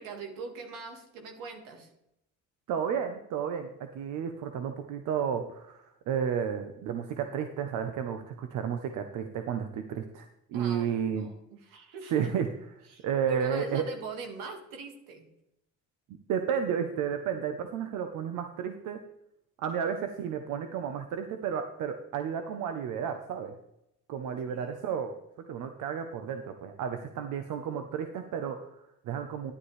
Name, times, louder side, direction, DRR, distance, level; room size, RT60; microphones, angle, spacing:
voice 1, 0.0-1.9 10.5-12.3 12.9-15.3 24.5-24.7, right 3 dB, 90° right, 4 dB, 1.9 m, -42 dB
voice 2, 2.7-11.3 12.1-13.8 16.3-19.0 19.6-23.5 24.1-25.1 25.5-29.5, right 7 dB, 75° right, 7 dB, 0.9 m, -32 dB
11.0 x 9.8 x 3.3 m, 0.83 s
cardioid pair, 90°, 32 cm